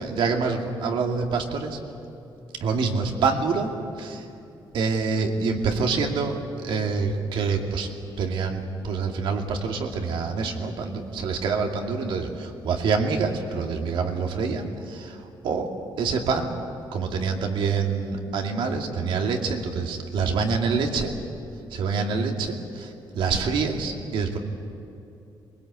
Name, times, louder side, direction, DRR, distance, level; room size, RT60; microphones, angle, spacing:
voice 1, 0.0-1.8 2.6-3.7 4.0-4.3 4.7-7.9 8.2-15.7 16.0-16.5 16.9-21.1 21.7-24.4, right 4 dB, 80° right, 2 dB, 2.5 m, -26 dB
23.0 x 21.0 x 8.3 m, 2.7 s
cardioid pair, 125°, 8 cm